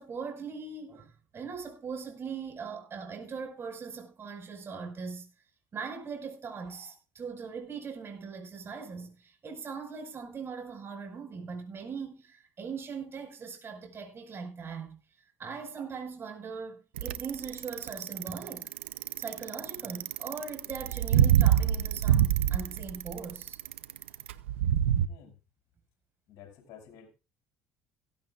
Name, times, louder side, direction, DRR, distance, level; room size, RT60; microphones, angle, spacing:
voice 1, 0.0-5.3 5.7-15.0 15.4-18.7 19.2-23.6, right 5 dB, 40° right, 5.5 m, -40 dB
Bicycle, 17.0-25.0, right 10 dB, 90° right, 0.7 m, -25 dB
voice 2, 26.3-27.1, left 8 dB, 70° left, 7.1 m, -51 dB
16.5 x 15.5 x 2.5 m
hypercardioid pair, 70°, 6 cm